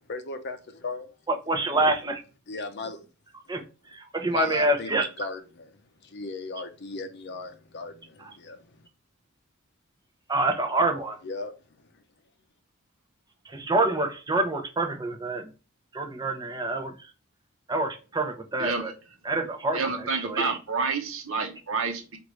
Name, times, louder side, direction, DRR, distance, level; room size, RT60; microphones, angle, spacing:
voice 1, 0.1-1.1 2.5-3.0 4.3-5.7 6.0-8.8 11.2-11.9, left 3 dB, 55° left, 0.6 m, -37 dB
voice 2, 1.3-2.2 3.5-3.6 3.9-5.1 8.2-8.3 10.3-11.2 13.5-15.5 15.9-17.1 17.7-18.9 19.2-20.6, right 2 dB, 20° right, 0.7 m, -27 dB
voice 3, 19.7-22.2, right 4 dB, 70° right, 0.9 m, -29 dB
4.6 x 2.6 x 3.1 m
head